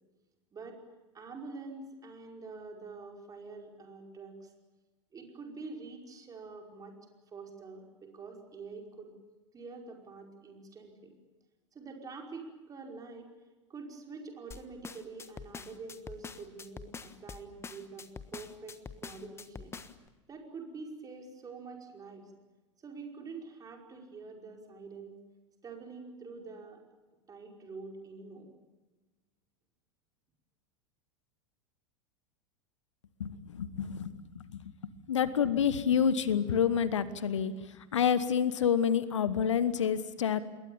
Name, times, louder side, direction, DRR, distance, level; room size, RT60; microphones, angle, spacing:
voice 1, 1.1-4.5 5.1-6.9 7.3-9.1 9.5-11.1 11.7-13.3 13.7-18.1 18.3-19.7 20.3-22.3 22.8-25.2 25.6-26.8 27.3-28.5, right 4 dB, 20° right, 1 dB, 5.2 m, -46 dB
sound 1, 14.5-20.1, left 5 dB, 15° left, 1.3 m, -45 dB
voice 2, 33.2-34.7 35.1-40.4, left 8 dB, 70° left, 15 dB, 1.2 m, -28 dB
28.0 x 21.5 x 7.2 m, 1.2 s
figure-of-eight pair, 85°, 16 cm